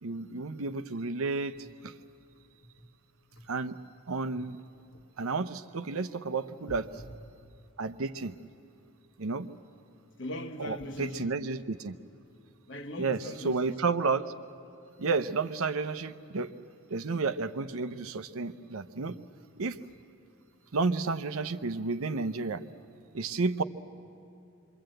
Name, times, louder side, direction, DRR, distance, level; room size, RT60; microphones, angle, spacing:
voice 1, 0.0-1.6 1.8-1.9 3.5-3.8 4.1-4.6 5.2-6.9 7.8-8.3 9.2-9.5 10.6-12.0 13.0-13.2 13.4-14.3 15.0-16.5 16.9-19.2 19.6-19.8 20.7-22.6 23.1-23.6, right 4 dB, 80° right, 0.7 m, -31 dB
voice 2, 2.6-3.0 3.3-3.5 4.3-4.4 4.9-5.1 6.7-7.1 7.4-7.6 10.2-11.3 12.7-13.8 19.0-19.2, left 1 dB, 55° left, 1.2 m, -41 dB
26.5 x 23.0 x 7.8 m
head